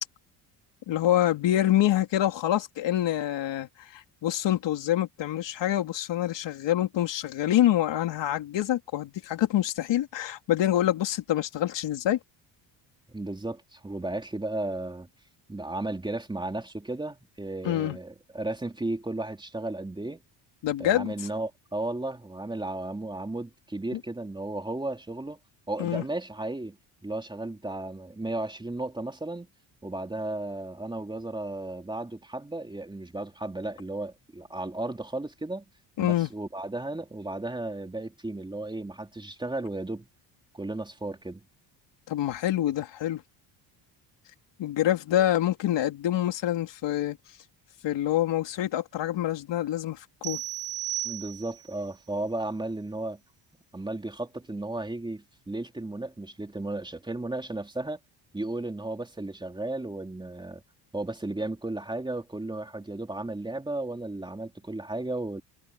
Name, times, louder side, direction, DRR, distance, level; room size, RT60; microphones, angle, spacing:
voice 1, 0.9-12.2 17.6-18.0 20.6-21.1 25.8-26.0 36.0-36.3 42.1-43.2 44.6-47.2 47.8-50.4, left 12 dB, 65° left, 3.5 m, -26 dB
voice 2, 13.1-15.1 15.5-20.2 20.8-25.4 25.7-26.8 27.0-29.5 29.8-35.6 36.0-40.1 40.5-41.5 51.0-53.2 53.7-58.0 58.3-60.6 60.9-65.4, right 2 dB, 10° right, 3.4 m, -34 dB
sound 1, 50.2-51.8, right 15 dB, 85° right, 3.2 m, -34 dB
cardioid pair, 140°, 47 cm